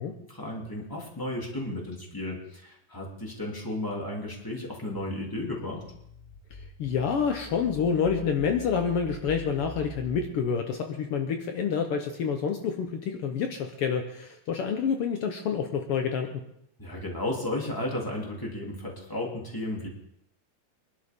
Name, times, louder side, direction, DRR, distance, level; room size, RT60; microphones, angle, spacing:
voice 1, 0.3-5.8 16.8-19.9, left 1 dB, 5° left, -2 dB, 2.4 m, -34 dB
sound 1, 4.9-10.3, left 2 dB, 45° left, 1.1 m, -44 dB
voice 2, 6.8-16.4, left 6 dB, 85° left, 5 dB, 1.2 m, -28 dB
25.0 x 11.5 x 3.7 m, 0.75 s
omnidirectional pair, 4.0 m